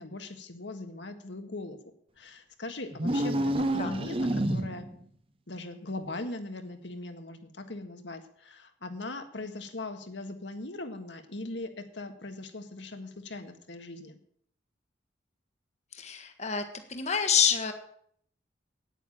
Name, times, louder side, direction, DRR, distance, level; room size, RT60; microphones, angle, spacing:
voice 1, 0.0-1.8 2.2-4.9 5.5-14.2, left 2 dB, 70° left, 6 dB, 1.6 m, -40 dB
sound 1, 2.9-5.0, right 1 dB, 30° right, 0.9 m, -28 dB
voice 2, 15.9-16.6 16.9-17.7, left 7 dB, 40° left, 7 dB, 1.4 m, -27 dB
9.5 x 9.2 x 8.7 m, 0.65 s
head